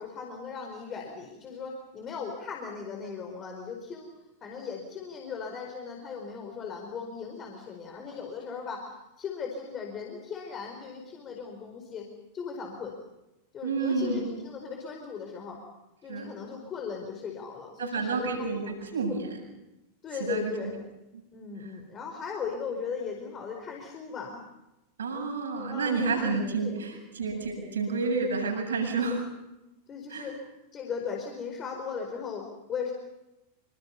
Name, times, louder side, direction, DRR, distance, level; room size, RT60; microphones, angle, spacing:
voice 1, 0.0-4.1 4.4-8.8 9.2-12.1 12.3-12.9 13.5-15.6 16.0-18.5 20.0-20.8 21.3-24.4 25.7-26.8 29.0-29.2 29.9-30.4 30.7-32.9, left 5 dB, 25° left, 2 dB, 4.7 m, -38 dB
voice 2, 13.6-14.4 16.1-16.3 17.8-19.5 20.2-20.5 25.0-29.3 30.1-30.3, right 4 dB, 70° right, 3 dB, 8.0 m, -30 dB
27.0 x 26.0 x 5.6 m, 0.96 s
figure-of-eight pair, 90°, 0 cm